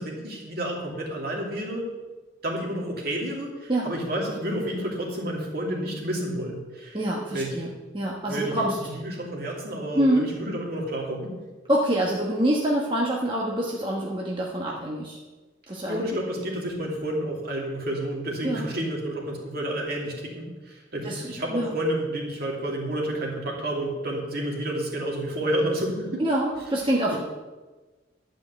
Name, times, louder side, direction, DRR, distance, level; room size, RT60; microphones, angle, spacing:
voice 1, 0.0-1.9 2.4-7.0 7.3-7.7 8.3-11.3 15.9-26.2 27.1-27.2, right 1 dB, 55° right, -1 dB, 2.7 m, -30 dB
voice 2, 6.9-8.8 9.9-10.3 11.7-15.2 15.7-16.2 18.4-18.6 21.0-21.7 26.2-27.2, right 1 dB, 25° right, -3 dB, 1.2 m, -26 dB
12.0 x 5.4 x 8.4 m, 1.2 s
head